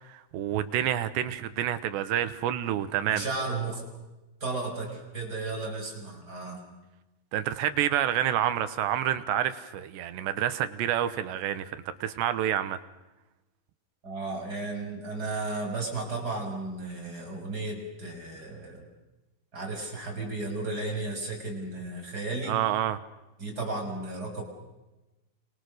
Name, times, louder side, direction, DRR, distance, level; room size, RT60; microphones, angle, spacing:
voice 1, 0.1-3.2 7.3-12.8 22.5-23.0, right 11 dB, 75° right, 11 dB, 3.1 m, -28 dB
voice 2, 3.0-3.8 4.4-6.6 14.0-18.9 19.5-22.6 23.4-24.4, right 3 dB, 20° right, 1 dB, 6.7 m, -34 dB
29.5 x 28.5 x 6.6 m, 1.0 s
omnidirectional pair, 5.7 m